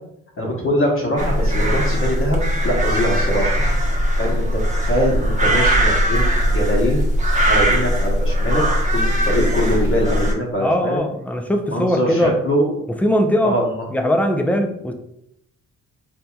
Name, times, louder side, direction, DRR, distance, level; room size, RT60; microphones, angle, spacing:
voice 1, 0.4-3.6 4.2-7.0 7.5-8.6 8.9-11.0 11.7-12.7 13.4-13.7, equal, 45° left, -2 dB, 1.0 m, -22 dB
sound 1, 1.2-10.3, equal, 25° right, 0.8 m, -19 dB
voice 2, 10.6-12.4 13.0-13.6 13.9-14.9, equal, 5° left, 4 dB, 0.4 m, -20 dB
4.3 x 2.7 x 2.3 m, 0.77 s
cardioid pair, 90°, 30 cm